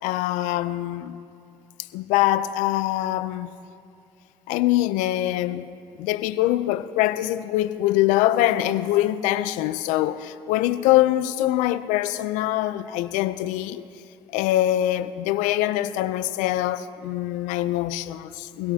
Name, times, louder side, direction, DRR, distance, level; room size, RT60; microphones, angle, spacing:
voice 1, 0.0-1.2 1.9-3.5 4.5-5.7 6.0-13.8 14.3-18.7, left 14 dB, 85° left, 0.5 m, -23 dB
24.0 x 17.0 x 2.8 m
supercardioid pair, 60°, 13 cm